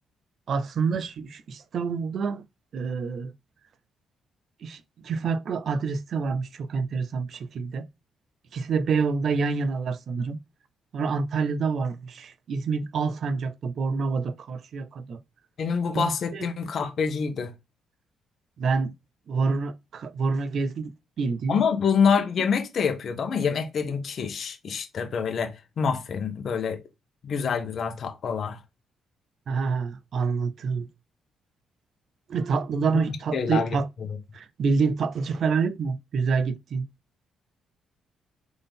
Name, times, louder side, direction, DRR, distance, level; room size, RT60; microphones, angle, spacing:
voice 1, 0.5-2.4 2.7-3.3 4.6-7.9 8.5-10.4 10.9-15.2 15.9-16.5 18.6-18.9 19.3-20.9 21.2-21.6 29.5-30.9 32.3-33.9 34.3-36.8, right 5 dB, 60° right, 0.5 m, -27 dB
voice 2, 15.6-17.5 21.5-26.8 27.2-28.6 32.9-33.0 33.3-33.8 34.1-34.2, left 6 dB, 55° left, 1.0 m, -26 dB
3.9 x 3.6 x 3.6 m
cardioid pair, 90°, 0 cm